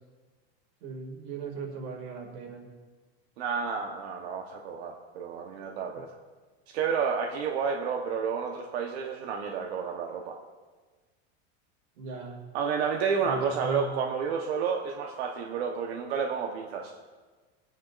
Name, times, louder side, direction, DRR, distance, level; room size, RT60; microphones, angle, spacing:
voice 1, 0.8-2.6 12.0-12.4 13.2-13.9, right 4 dB, 55° right, 2 dB, 2.4 m, -38 dB
voice 2, 3.4-6.1 6.7-10.4 12.5-16.9, right 6 dB, 80° right, 2 dB, 1.1 m, -30 dB
21.5 x 9.4 x 2.5 m, 1.4 s
supercardioid pair, 180°, 32 cm